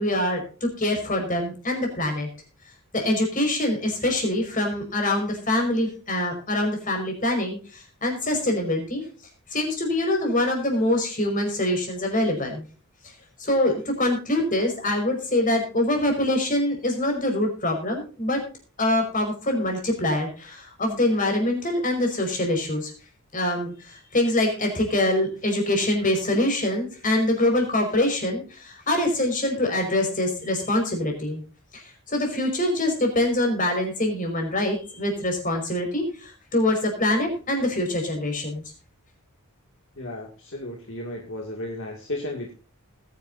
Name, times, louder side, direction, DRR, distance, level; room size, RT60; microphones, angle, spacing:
voice 1, 0.0-2.3 2.9-9.0 9.5-12.6 13.4-18.4 18.8-22.9 23.3-31.4 31.7-38.6, left 1 dB, 35° left, 3 dB, 5.3 m, -24 dB
voice 2, 40.0-42.5, left 1 dB, 60° left, 0 dB, 2.3 m, -34 dB
20.5 x 10.5 x 2.7 m, 0.38 s
head